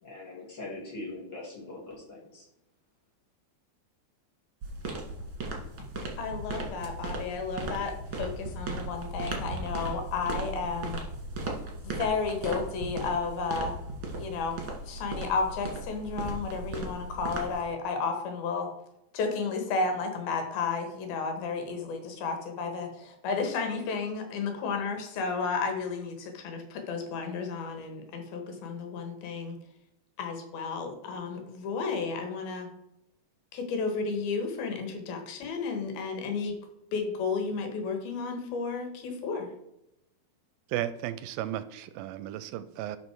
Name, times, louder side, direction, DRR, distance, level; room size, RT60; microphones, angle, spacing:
voice 1, 0.0-2.5, left 2 dB, 30° left, -3 dB, 3.3 m, -41 dB
sound 1, 4.6-17.6, right 2 dB, 40° right, 2.1 m, -37 dB
voice 2, 6.2-11.0 11.8-13.8 14.2-14.6 14.9-18.7 19.1-29.6 30.2-32.7 33.5-36.5 36.9-39.5, left 4 dB, 80° left, 5 dB, 3.3 m, -32 dB
voice 3, 40.7-43.0, right 12 dB, 80° right, 14 dB, 2.3 m, -34 dB
11.5 x 5.4 x 4.6 m, 0.86 s
omnidirectional pair, 4.3 m